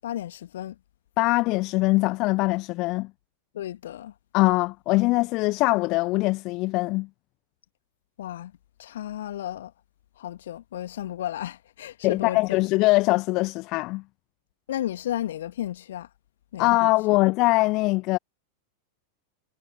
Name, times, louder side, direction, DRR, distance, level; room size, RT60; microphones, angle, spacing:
voice 1, 0.0-0.8 3.5-4.1 8.2-8.5 8.8-9.7 10.2-12.4 14.7-16.1 16.5-17.2, left 12 dB, 60° left, 1.8 m, -33 dB
voice 2, 1.2-3.1 4.3-7.1 12.0-14.0 16.6-18.2, left 22 dB, 40° left, 1.1 m, -22 dB
figure-of-eight pair, 90°, 0 cm